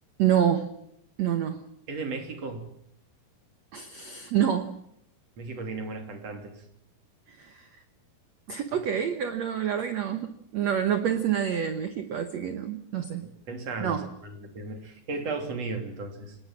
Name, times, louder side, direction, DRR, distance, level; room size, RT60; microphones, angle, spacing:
voice 1, 0.2-0.7 1.2-1.6 3.7-4.8 7.3-7.7 8.5-13.3 13.8-14.1, right 9 dB, 85° right, 9 dB, 1.5 m, -27 dB
voice 2, 1.9-2.6 5.4-6.6 13.2-16.4, right 3 dB, 40° right, 5 dB, 3.7 m, -35 dB
25.0 x 20.0 x 7.4 m, 0.74 s
omnidirectional pair, 4.9 m